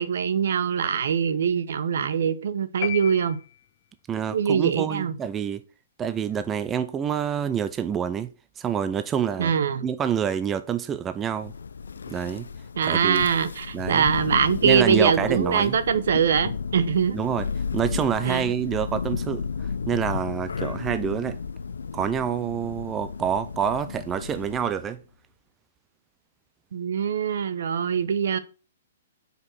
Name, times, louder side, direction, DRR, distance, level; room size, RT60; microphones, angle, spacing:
voice 1, 0.0-3.4 4.3-5.1 9.4-9.8 12.8-17.2 18.2-18.5 26.7-28.4, right 7 dB, 70° right, 0.8 m, -23 dB
sound 1, 2.8-4.1, left 13 dB, 45° left, 0.7 m, -35 dB
voice 2, 4.1-5.6 6.0-8.3 8.6-9.5 9.8-11.5 12.1-12.5 12.9-13.2 13.7-14.1 14.6-15.8 17.1-17.5 17.7-21.4 21.9-25.0, right 8 dB, 20° right, 0.5 m, -27 dB
Thunder, 11.2-24.9, left 5 dB, 85° left, 0.5 m, -33 dB
5.2 x 4.7 x 6.3 m
hypercardioid pair, 140°, 0 cm